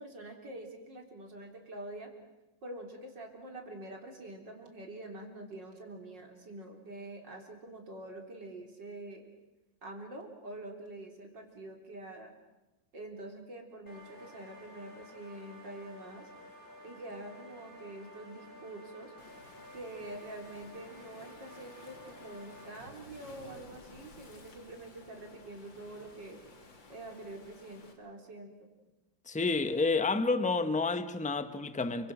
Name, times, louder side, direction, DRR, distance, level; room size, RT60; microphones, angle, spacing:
voice 1, 0.0-2.1 2.6-9.2 9.8-12.3 12.9-16.3 16.8-19.1 19.7-26.4 26.9-28.7, right 2 dB, 65° right, 4.3 m, -46 dB
sound 1, 13.9-22.8, left 1 dB, 25° left, 5.6 m, -52 dB
Waves surf, 19.2-27.9, left 3 dB, 75° left, 3.5 m, -55 dB
voice 2, 29.3-32.1, left 3 dB, 5° left, 0.7 m, -29 dB
30.0 x 24.5 x 6.2 m
omnidirectional pair, 2.1 m